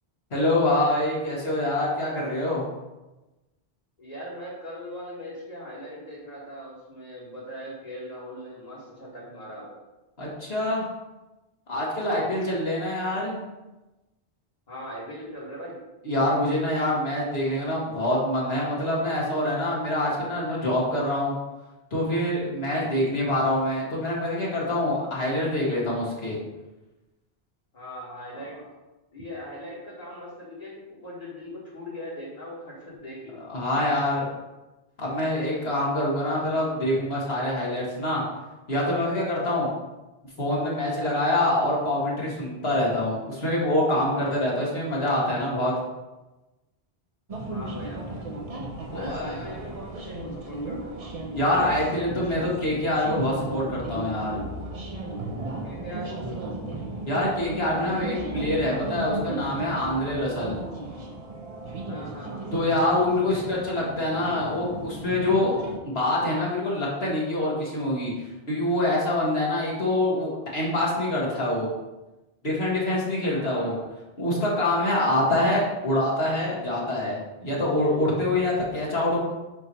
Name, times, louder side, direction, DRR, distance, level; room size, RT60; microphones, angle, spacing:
voice 1, 0.3-2.6 10.2-10.9 11.7-13.4 16.0-21.3 21.9-26.4 33.5-34.3 35.0-38.2 38.7-39.7 40.4-45.7 48.9-49.4 51.4-54.5 57.1-60.6 62.5-65.6 65.8-68.1 68.5-71.7 72.4-73.7 74.2-79.2, left 1 dB, 75° left, -5 dB, 2.2 m, -25 dB
voice 2, 4.0-9.7 12.1-12.5 14.7-15.8 27.7-28.6 29.1-33.4 47.5-48.3 48.9-51.0 55.6-56.5 61.9-62.7 73.3-73.9, equal, 40° left, -8 dB, 1.8 m, -40 dB
sound 1, 47.3-65.8, right 2 dB, 40° right, 0.8 m, -35 dB
8.7 x 3.1 x 5.5 m, 1.1 s
omnidirectional pair, 1.1 m